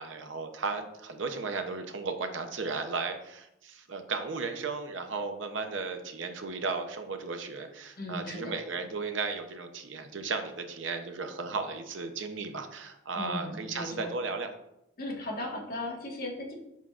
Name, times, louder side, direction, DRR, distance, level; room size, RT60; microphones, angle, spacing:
voice 1, 0.0-14.5, right 4 dB, 85° right, 6 dB, 0.7 m, -35 dB
voice 2, 8.0-8.6 13.1-14.1 15.0-16.5, left 1 dB, 50° left, -2 dB, 1.4 m, -37 dB
7.2 x 5.7 x 2.4 m, 0.81 s
head